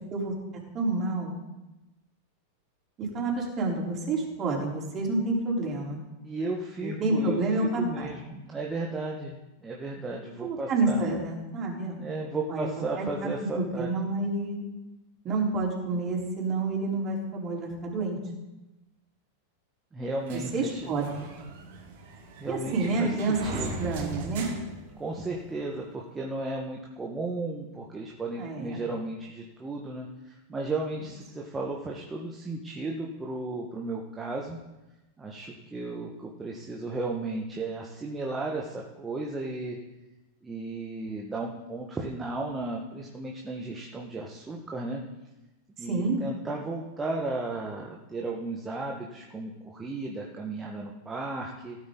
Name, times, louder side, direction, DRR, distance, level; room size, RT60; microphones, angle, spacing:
voice 1, 0.7-1.4 3.0-6.0 6.8-8.2 10.4-12.0 12.5-12.7 13.0-14.7 15.2-18.2 20.3-21.3 22.5-23.4 23.8-24.5 28.4-28.8 45.8-46.2, right 3 dB, 30° right, -2 dB, 4.6 m, -29 dB
voice 2, 6.2-7.4 7.8-11.0 12.0-13.9 19.9-20.9 22.4-23.1 23.4-23.8 25.0-34.6 35.2-39.8 40.4-45.0 45.8-51.8, right 2 dB, 15° right, -1 dB, 1.8 m, -34 dB
sound 1, 20.3-25.5, right 3 dB, 50° right, 3.1 m, -40 dB
17.5 x 9.7 x 4.2 m, 1.0 s
figure-of-eight pair, 90°, 0 cm